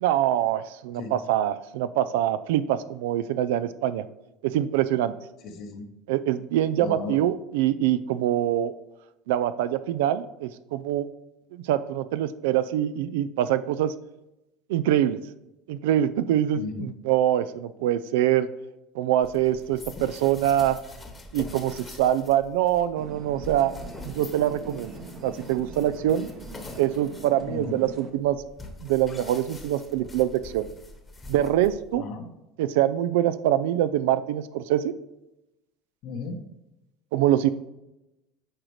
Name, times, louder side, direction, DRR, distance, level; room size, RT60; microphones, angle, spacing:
voice 1, 0.0-4.0 4.4-5.1 6.1-8.7 9.3-11.1 11.5-13.9 14.7-15.2 15.7-18.5 19.0-20.8 21.3-23.7 24.0-24.9 25.2-26.3 26.8-28.4 28.8-30.7 31.3-32.0 32.6-34.9 37.1-37.5, right 12 dB, 85° right, 13 dB, 0.3 m, -24 dB
voice 2, 5.4-5.9 6.8-7.2 16.5-16.9 27.5-27.8 31.9-32.3 36.0-36.4, left 4 dB, 60° left, 4 dB, 1.1 m, -35 dB
sound 1, 19.2-32.0, left 2 dB, 20° left, 1.1 m, -44 dB
sound 2, 22.9-28.1, right 4 dB, 45° right, 0.9 m, -43 dB
8.7 x 5.0 x 3.1 m, 0.93 s
supercardioid pair, 110°, 0 cm